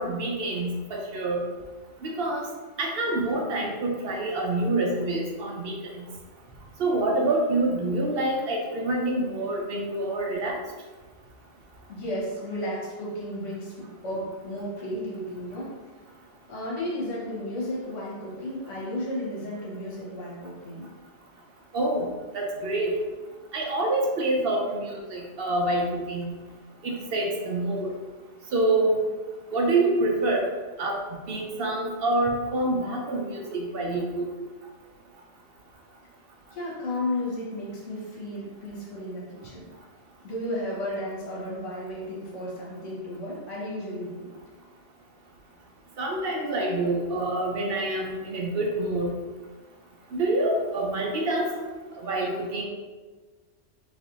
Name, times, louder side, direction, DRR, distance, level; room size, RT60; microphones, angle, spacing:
voice 1, 0.0-1.4 2.0-2.5 2.8-5.9 6.8-10.6 21.7-22.1 22.3-22.9 23.5-26.3 26.8-27.9 28.5-29.0 29.5-30.4 30.8-31.0 31.3-34.3 46.0-49.1 50.1-51.5 51.9-52.6, right 2 dB, 60° right, 0 dB, 0.7 m, -26 dB
voice 2, 11.9-15.8 16.5-20.9 36.5-39.7 40.2-44.3, left 1 dB, 75° left, -5 dB, 1.4 m, -33 dB
3.3 x 3.3 x 2.6 m, 1.3 s
omnidirectional pair, 1.3 m